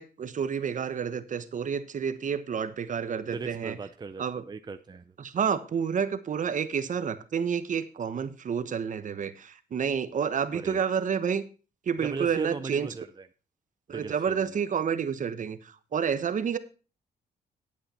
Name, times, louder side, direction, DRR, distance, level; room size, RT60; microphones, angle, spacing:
voice 1, 0.0-3.8 4.2-4.4 5.2-11.4 11.9-12.9 13.9-16.6, right 7 dB, 50° right, 12 dB, 1.0 m, -29 dB
voice 2, 3.2-5.1 10.5-10.8 12.0-13.3 13.9-14.4, right 4 dB, 25° right, 9 dB, 0.6 m, -37 dB
10.5 x 8.7 x 4.3 m, 0.35 s
cardioid pair, 95°, 17 cm